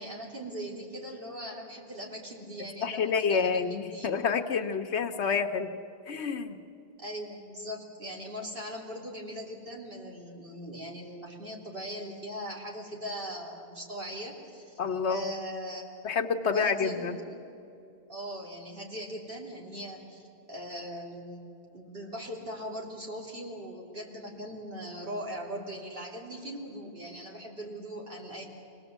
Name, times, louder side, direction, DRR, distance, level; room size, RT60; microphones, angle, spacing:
voice 1, 0.0-4.2 7.0-14.8 15.1-16.0 16.5-17.4 18.1-21.5 21.7-28.4, equal, 55° right, -2 dB, 3.5 m, -40 dB
voice 2, 2.8-5.7 6.1-6.5 14.8-15.2 16.0-17.2, left 5 dB, 85° left, 7 dB, 1.3 m, -28 dB
25.5 x 19.0 x 8.1 m, 2.7 s
omnidirectional pair, 1.1 m